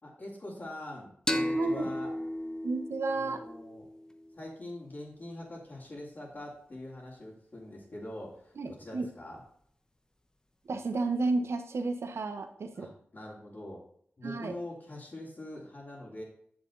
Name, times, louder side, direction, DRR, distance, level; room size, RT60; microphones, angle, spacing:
voice 1, 0.0-2.1 3.0-3.9 4.3-9.4 12.7-13.8 14.2-16.2, left 1 dB, 45° left, -7 dB, 3.4 m, -44 dB
sound 1, 1.3-4.6, left 1 dB, 15° left, 1.1 m, -34 dB
voice 2, 1.5-1.9 2.6-3.4 8.6-9.1 10.7-12.9 14.2-14.5, right 3 dB, 80° right, 7 dB, 1.2 m, -32 dB
10.0 x 7.0 x 4.0 m, 0.65 s
cardioid pair, 60°, 4 cm